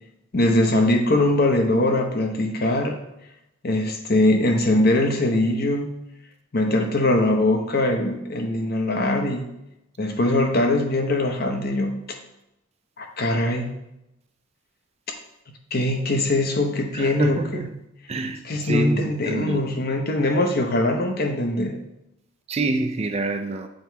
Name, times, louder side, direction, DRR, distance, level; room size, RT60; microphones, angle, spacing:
voice 1, 0.3-3.0 3.6-5.9 6.5-9.5 10.0-12.0 13.0-13.7 15.7-17.7 18.4-21.8, left 1 dB, 45° left, 3 dB, 0.8 m, -22 dB
voice 2, 16.9-17.7 18.1-19.7 22.5-23.7, right 3 dB, 30° right, 6 dB, 0.4 m, -27 dB
7.5 x 3.1 x 4.5 m, 0.86 s
head